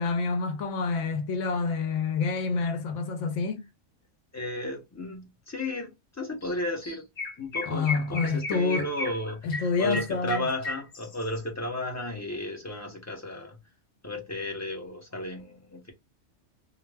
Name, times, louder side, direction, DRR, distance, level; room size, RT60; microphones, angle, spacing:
voice 1, 0.0-3.7 7.6-8.9 9.4-10.5, left 4 dB, 80° left, 1.0 m, -28 dB
voice 2, 4.3-7.1 7.4-13.6 14.0-15.9, left 1 dB, 15° left, 0.6 m, -34 dB
Chirp tweet, 6.4-6.5 6.8-11.4, left 3 dB, 65° left, 1.2 m, -35 dB
2.4 x 2.1 x 3.3 m
omnidirectional pair, 1.3 m